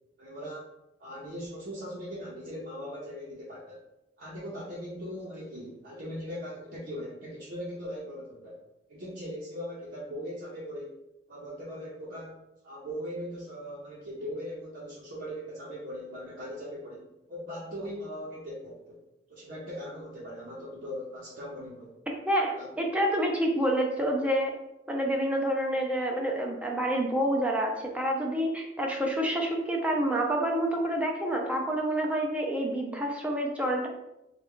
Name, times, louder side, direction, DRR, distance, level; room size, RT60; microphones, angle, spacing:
voice 1, 0.2-0.6 1.0-3.8 4.2-8.6 8.9-11.0 11.3-12.4 12.6-19.0 19.3-21.9 22.6-22.7, equal, 60° right, -6 dB, 0.7 m, -39 dB
voice 2, 22.3-24.5 24.9-33.9, right 1 dB, 10° right, 0 dB, 0.4 m, -28 dB
3.4 x 2.2 x 3.6 m, 0.90 s
head